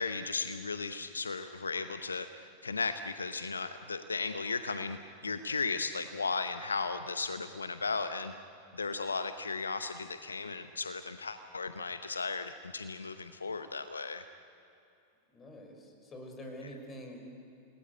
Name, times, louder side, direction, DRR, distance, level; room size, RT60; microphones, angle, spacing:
voice 1, 0.0-5.0 5.2-8.3 8.7-14.2, left 4 dB, 75° left, 10 dB, 0.8 m, -35 dB
voice 2, 15.3-17.2, equal, 20° left, 4 dB, 5.5 m, -46 dB
28.5 x 20.0 x 9.8 m, 2.6 s
figure-of-eight pair, 90°, 0 cm